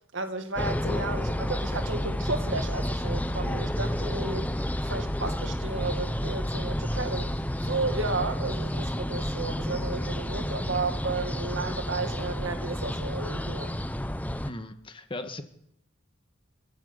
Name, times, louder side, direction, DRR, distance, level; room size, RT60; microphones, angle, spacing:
voice 1, 0.1-4.5 4.8-13.8, right 3 dB, 65° right, 2.2 m, -33 dB
sound 1, 0.6-14.5, equal, 10° left, 0.9 m, -30 dB
voice 2, 14.5-15.4, left 2 dB, 25° left, 1.7 m, -37 dB
25.5 x 14.0 x 8.2 m
head